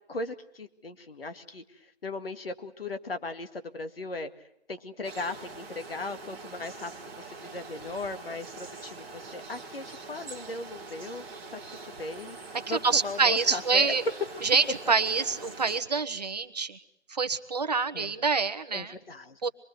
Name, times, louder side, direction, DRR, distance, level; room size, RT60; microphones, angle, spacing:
voice 1, 0.1-4.3 4.7-6.9 7.2-12.4 12.7-13.9 14.3-14.4 17.9-18.1 18.7-19.4, left 2 dB, 65° left, 8 dB, 2.2 m, -38 dB
sound 1, 5.0-15.8, right 3 dB, 10° right, 1.7 m, -44 dB
voice 2, 12.7-14.0 14.4-16.8 17.1-18.9 19.4-19.5, right 4 dB, 40° right, 10 dB, 1.1 m, -26 dB
26.5 x 22.0 x 8.1 m, 0.77 s
figure-of-eight pair, 165°, 32 cm